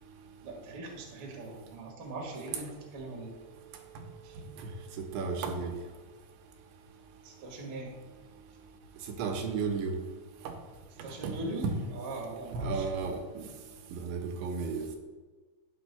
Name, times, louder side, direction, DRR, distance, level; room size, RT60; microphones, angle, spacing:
voice 1, 0.4-3.3 4.2-4.4 7.2-8.0 11.0-13.0, right 2 dB, 60° right, -1 dB, 1.2 m, -41 dB
voice 2, 5.0-5.7 9.2-10.0 11.2-11.4 11.6-11.8 12.5-13.5 13.9-14.9, right 4 dB, 80° right, 3 dB, 3.0 m, -33 dB
12.5 x 9.7 x 2.2 m, 1.4 s
omnidirectional pair, 5.3 m